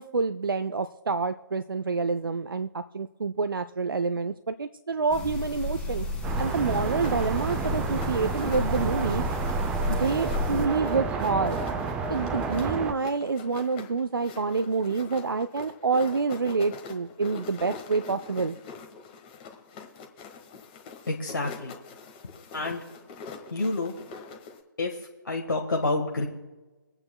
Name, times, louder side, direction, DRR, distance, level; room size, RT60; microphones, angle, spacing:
voice 1, 0.0-6.1 6.4-9.2 9.9-11.6 12.1-18.5, right 4 dB, 80° right, 10 dB, 0.5 m, -27 dB
sound 1, 5.1-10.7, left 2 dB, 10° left, 1.9 m, -32 dB
sound 2, 6.2-12.9, right 5 dB, 10° right, 0.4 m, -31 dB
sound 3, 6.3-24.6, left 5 dB, 25° left, 1.3 m, -44 dB
voice 2, 21.1-21.7 22.5-22.8 23.5-23.9 24.8-25.0 25.2-26.3, left 2 dB, 75° left, 1 dB, 1.5 m, -28 dB
24.5 x 8.8 x 2.3 m, 1.2 s
figure-of-eight pair, 140°, 11 cm